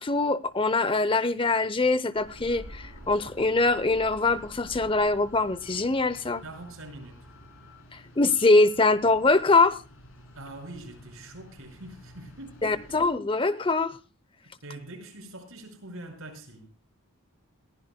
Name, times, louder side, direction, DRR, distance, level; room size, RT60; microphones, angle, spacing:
voice 1, 0.0-6.4 7.9-9.8 12.6-14.0, left 3 dB, 25° left, 0.7 m, -23 dB
sound 1, 2.1-13.1, equal, 65° left, 4.0 m, -49 dB
voice 2, 6.4-7.3 10.4-13.2 14.4-16.7, right 2 dB, 70° right, 5.5 m, -44 dB
22.0 x 15.0 x 2.2 m
head